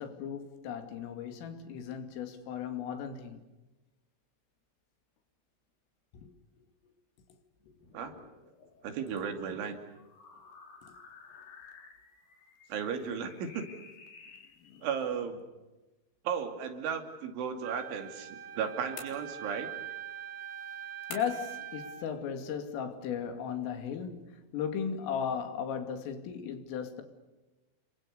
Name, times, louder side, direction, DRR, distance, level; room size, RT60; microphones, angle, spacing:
voice 1, 0.0-3.4 6.1-6.3 7.3-7.4 7.7-7.8 10.8-10.9 14.6-14.9 21.1-27.0, left 7 dB, 90° left, 5.1 m, -36 dB
sound 1, 7.7-15.1, left 5 dB, 50° left, 4.2 m, -55 dB
voice 2, 8.8-9.8 12.7-13.7 14.8-15.4 16.2-19.7, right 7 dB, 75° right, 5.0 m, -35 dB
Wind instrument woodwind instrument, 17.6-22.1, right 9 dB, 40° right, 2.5 m, -43 dB
sound 2, 19.0-19.7 21.1-21.6, left 5 dB, 65° left, 6.0 m, -46 dB
30.0 x 24.0 x 6.8 m
omnidirectional pair, 5.7 m